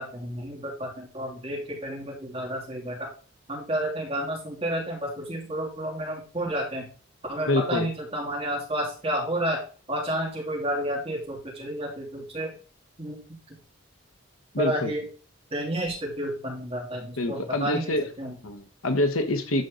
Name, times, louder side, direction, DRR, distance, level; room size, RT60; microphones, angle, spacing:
voice 1, 0.0-3.1 3.5-6.9 7.3-9.6 9.9-12.5 13.0-13.2 14.6-15.0 15.5-18.4, right 1 dB, 25° right, -3 dB, 3.3 m, -31 dB
voice 2, 7.5-7.9 14.5-14.9 17.2-18.1 18.4-19.6, left 1 dB, 80° left, 7 dB, 1.3 m, -26 dB
12.0 x 4.5 x 4.0 m, 0.37 s
head